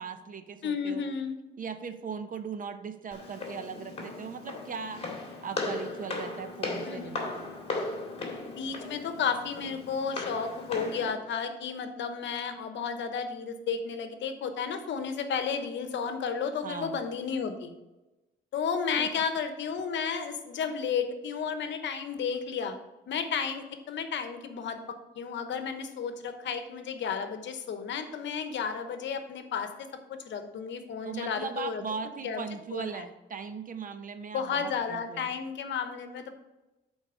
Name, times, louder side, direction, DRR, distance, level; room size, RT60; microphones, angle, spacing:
voice 1, 0.0-1.1 1.6-7.5 16.6-17.0 19.0-19.2 31.0-35.3, right 6 dB, 45° right, 9 dB, 0.7 m, -39 dB
voice 2, 0.6-1.3 6.8-7.1 8.4-17.7 18.5-22.8 23.1-24.8 25.1-31.8 32.2-32.4 32.7-33.0 34.3-36.3, left 6 dB, 65° left, 8 dB, 0.9 m, -33 dB
Walk footsteps, 3.1-11.1, left 3 dB, 30° left, 2.0 m, -37 dB
8.5 x 4.1 x 4.9 m, 1.0 s
cardioid pair, 90°, 20 cm